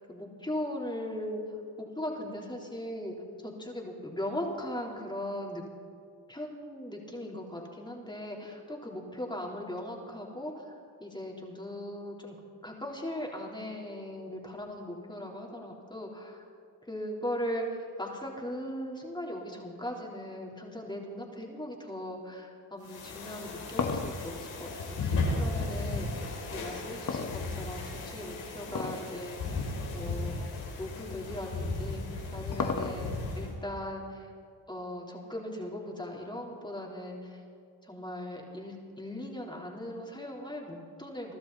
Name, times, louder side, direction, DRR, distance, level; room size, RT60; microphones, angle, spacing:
voice 1, 0.1-1.4 1.8-5.6 6.3-10.7 11.0-16.4 16.8-30.4 30.8-32.0 32.3-34.3 34.7-37.4 37.8-41.4, left 1 dB, 10° left, -2 dB, 3.7 m, -39 dB
sound 1, 22.8-33.5, left 3 dB, 80° left, 4.3 m, -35 dB
sound 2, 23.3-25.7 27.1-27.9 28.7-29.1 29.4-29.5 30.3-30.4 31.8-33.3, left 5 dB, 45° left, 1.6 m, -34 dB
24.0 x 12.5 x 4.1 m, 2.3 s
supercardioid pair, 55°, 43 cm